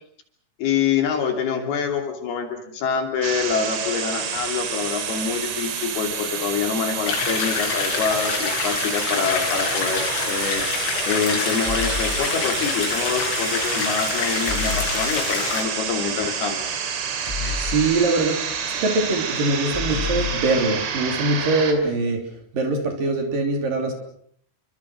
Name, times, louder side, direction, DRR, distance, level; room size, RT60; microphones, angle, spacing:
voice 1, 0.6-16.6, left 6 dB, 60° left, 5 dB, 4.6 m, -26 dB
sound 1, 3.2-21.7, right 7 dB, 65° right, 4.7 m, -29 dB
sound 2, 7.1-15.6, left 5 dB, 80° left, 6.5 m, -26 dB
sound 3, 11.6-12.2 14.5-15.0 17.3-17.9 19.7-20.5, left 4 dB, 10° left, 7.9 m, -29 dB
voice 2, 17.3-18.4 18.6-22.2 22.5-23.9, right 3 dB, 50° right, 4 dB, 4.6 m, -23 dB
30.0 x 24.0 x 6.2 m, 0.64 s
omnidirectional pair, 5.2 m